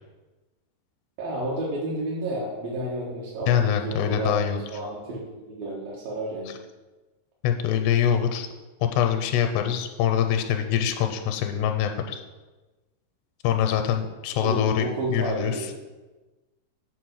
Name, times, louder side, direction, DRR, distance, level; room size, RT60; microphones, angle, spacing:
voice 1, 1.2-6.5 14.4-15.7, right 1 dB, 70° right, -5 dB, 2.7 m, -31 dB
voice 2, 3.5-4.6 6.5-6.6 7.4-8.5 8.9-12.2 13.4-15.7, left 9 dB, 85° left, 6 dB, 2.6 m, -24 dB
7.6 x 4.1 x 6.3 m, 1.2 s
omnidirectional pair, 4.8 m